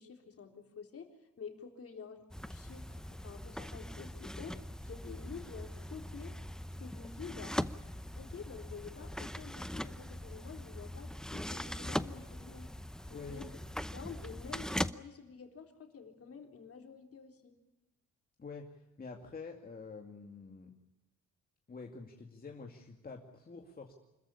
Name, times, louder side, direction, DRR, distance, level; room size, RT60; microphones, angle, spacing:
voice 1, 0.0-6.4 6.8-7.6 8.2-12.7 13.1-13.5 13.9-17.5, left 6 dB, 50° left, 4 dB, 3.8 m, -49 dB
sound 1, 2.3-14.9, left 1 dB, ahead, 0.7 m, -41 dB
voice 2, 13.1-13.5 18.4-20.8 21.7-23.9, left 4 dB, 30° left, 1 dB, 2.3 m, -47 dB
26.0 x 14.0 x 9.9 m, 1.0 s
cardioid pair, 90°, 30 cm